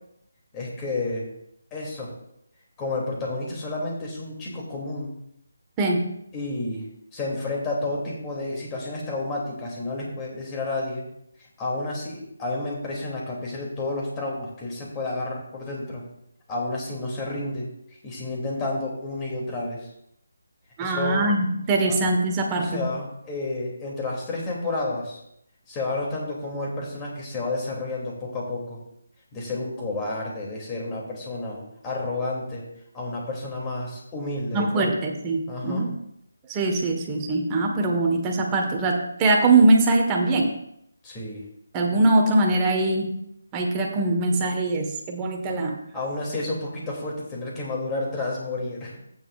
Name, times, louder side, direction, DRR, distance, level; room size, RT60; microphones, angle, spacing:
voice 1, 0.5-1.3 1.7-2.1 2.8-5.1 6.3-11.0 11.4-16.0 16.5-17.7 18.0-19.9 20.8-21.3 21.9-22.0 22.5-25.2 25.7-28.8 29.3-32.6 32.9-34.9 35.5-35.9 41.0-41.4 45.9-49.0, left 2 dB, 15° left, -3 dB, 2.7 m, -31 dB
voice 2, 20.8-22.8 34.5-35.9 36.5-40.5 41.7-43.1 43.5-45.8, right 2 dB, 15° right, 1 dB, 1.4 m, -22 dB
13.5 x 9.2 x 2.5 m, 0.75 s
figure-of-eight pair, 165°, 0 cm